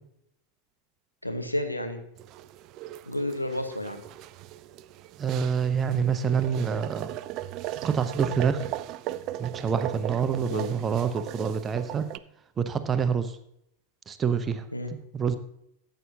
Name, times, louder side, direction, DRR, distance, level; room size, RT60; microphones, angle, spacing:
voice 1, 1.2-2.0 3.1-4.0 10.5-10.7 14.7-15.0, left 1 dB, 85° left, 7 dB, 1.0 m, -31 dB
sound 1, 2.2-12.2, right 14 dB, 40° right, 0.3 m, -38 dB
voice 2, 5.2-7.1 7.8-8.7 9.4-12.1 12.6-13.4 14.1-14.7 14.9-15.4, right 6 dB, 20° right, 10 dB, 0.7 m, -27 dB
13.5 x 7.9 x 2.8 m, 0.76 s
figure-of-eight pair, 90°, 0 cm